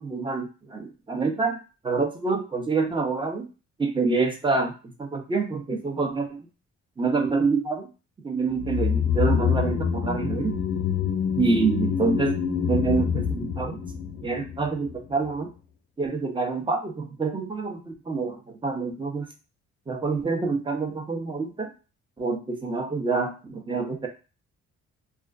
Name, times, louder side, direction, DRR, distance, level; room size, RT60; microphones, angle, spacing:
voice 1, 0.0-1.6 1.8-3.5 3.8-6.4 7.0-7.9 8.2-10.6 11.4-12.4 12.6-13.8 14.2-15.5 16.0-19.3 19.9-21.7 22.2-24.1, right 4 dB, 15° right, 4 dB, 0.5 m, -27 dB
sound 1, 8.6-15.0 15.2-15.3, left 7 dB, 50° left, 0.4 m, -26 dB
2.3 x 2.3 x 2.3 m, 0.33 s
cardioid pair, 90°, 30 cm